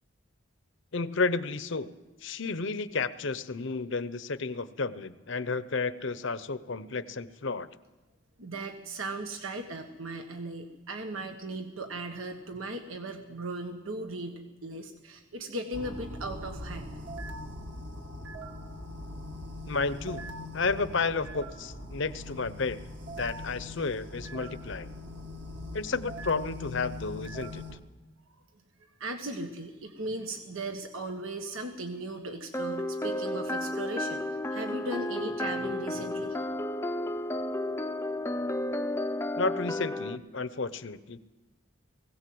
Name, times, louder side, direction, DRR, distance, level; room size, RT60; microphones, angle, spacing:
voice 1, 0.9-1.9 2.2-7.7 19.6-20.3 20.5-22.8 23.2-24.9 25.7-27.6 39.4-41.3, left 4 dB, 65° left, 13 dB, 0.8 m, -32 dB
voice 2, 8.4-16.9 29.0-36.5, right 2 dB, 85° right, 5 dB, 1.6 m, -37 dB
sound 1, 15.7-27.8, left 1 dB, 60° right, 2.1 m, -41 dB
sound 2, 32.5-40.2, left 1 dB, 10° left, 0.6 m, -32 dB
20.5 x 17.0 x 7.8 m, 1.2 s
head